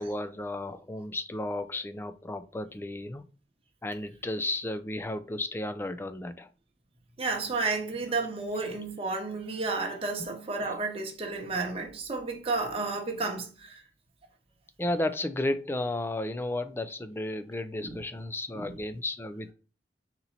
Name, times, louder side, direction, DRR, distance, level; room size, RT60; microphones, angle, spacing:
voice 1, 0.0-3.2 3.8-6.5 14.8-19.5, left 1 dB, 10° left, 0.3 m, -33 dB
voice 2, 7.2-13.8 17.8-18.0 18.5-18.7, right 3 dB, 30° right, 0.9 m, -32 dB
4.0 x 2.9 x 4.0 m
head